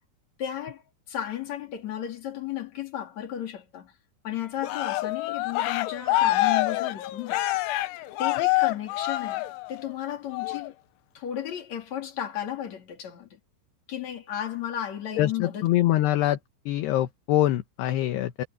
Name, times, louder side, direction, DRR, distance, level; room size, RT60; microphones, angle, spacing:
voice 1, 0.4-0.8 1.1-3.9 4.2-7.4 8.2-10.7 11.1-13.4 13.9-15.7, left 10 dB, 40° left, 3.9 m, -34 dB
Cheering, 4.6-9.9 10.3-10.7, left 16 dB, 90° left, 3.5 m, -26 dB
voice 2, 15.2-16.4 16.7-18.4, left 14 dB, 70° left, 2.9 m, -24 dB
omnidirectional pair, 5.4 m